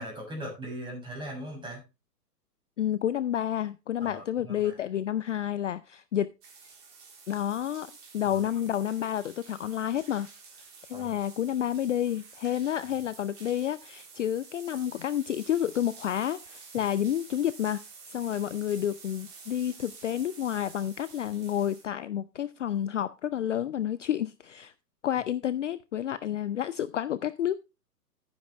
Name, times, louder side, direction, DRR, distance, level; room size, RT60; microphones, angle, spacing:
voice 1, 0.0-1.8 4.0-4.7 8.2-8.4 10.9-11.1 12.7-12.8, right 1 dB, 10° right, 6.6 m, -40 dB
voice 2, 2.8-6.3 7.3-10.3 10.9-17.8 18.1-24.7 25.0-27.6, left 10 dB, 50° left, 0.5 m, -30 dB
sound 1, 6.4-21.8, right 5 dB, 30° right, 3.2 m, -50 dB
12.0 x 9.7 x 3.2 m
figure-of-eight pair, 115°, 49 cm